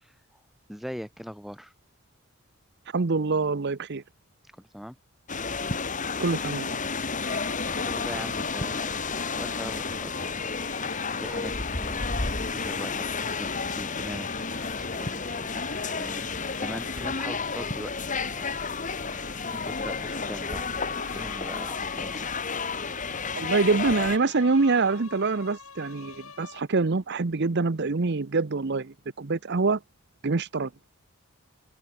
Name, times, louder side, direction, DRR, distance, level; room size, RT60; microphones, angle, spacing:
voice 1, 0.7-1.7 4.6-5.0 7.9-9.0 9.4-10.5 11.2-12.1 12.5-15.6 15.9-16.3 16.6-17.9 18.4-18.5 19.5-22.3, equal, ahead, 2.4 m, -40 dB
voice 2, 2.9-4.0 6.2-6.8 23.3-29.8 30.2-30.7, right 3 dB, 55° right, 0.8 m, -25 dB
sound 1, 5.3-24.2, left 4 dB, 35° left, 2.5 m, -31 dB
sound 2, 7.2-26.6, left 6 dB, 90° left, 4.0 m, -45 dB
open air
head